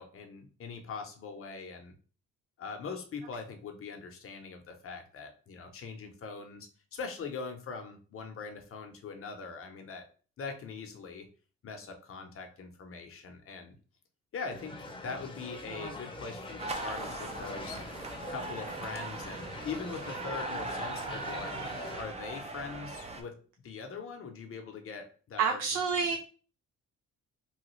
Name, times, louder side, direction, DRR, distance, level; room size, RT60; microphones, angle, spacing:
voice 1, 0.0-2.0 2.6-10.1 10.4-11.3 11.6-13.8 14.3-17.9 18.3-21.6 22.0-23.4 23.6-25.6 25.9-26.2, left 5 dB, 45° left, 5 dB, 0.8 m, -42 dB
sound 1, 14.5-22.0, left 2 dB, 15° left, 0.8 m, -43 dB
sound 2, 16.6-23.2, right 3 dB, 20° right, 0.5 m, -39 dB
voice 2, 25.4-26.2, right 6 dB, 65° right, 1 dB, 0.6 m, -29 dB
3.1 x 2.2 x 3.1 m, 0.39 s
cardioid pair, 90°, 30 cm